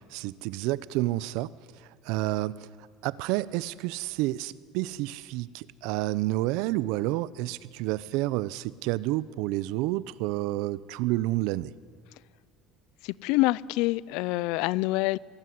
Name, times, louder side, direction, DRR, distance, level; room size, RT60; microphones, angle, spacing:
voice 1, 0.0-1.5 2.0-2.7 3.0-11.7, right 17 dB, 75° right, 19 dB, 0.8 m, -29 dB
voice 2, 13.0-15.2, left 20 dB, 75° left, 23 dB, 0.5 m, -26 dB
24.0 x 19.0 x 9.5 m, 2.2 s
cardioid pair, 120°, 0 cm